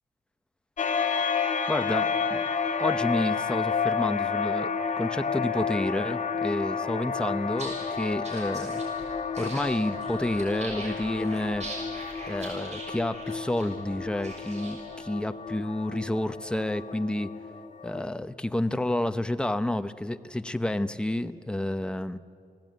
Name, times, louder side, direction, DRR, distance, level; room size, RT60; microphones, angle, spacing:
sound 1, 0.8-18.0, left 5 dB, 55° left, 2.0 m, -31 dB
voice 1, 1.7-2.4 2.8-4.7 5.0-8.8 9.4-11.7 12.3-17.3 17.8-22.2, left 1 dB, 5° left, 10 dB, 0.7 m, -30 dB
sound 2, 7.5-15.1, right 2 dB, 50° right, 6.7 m, -42 dB
29.0 x 19.0 x 9.3 m, 2.3 s
wide cardioid pair, 170°, 15 cm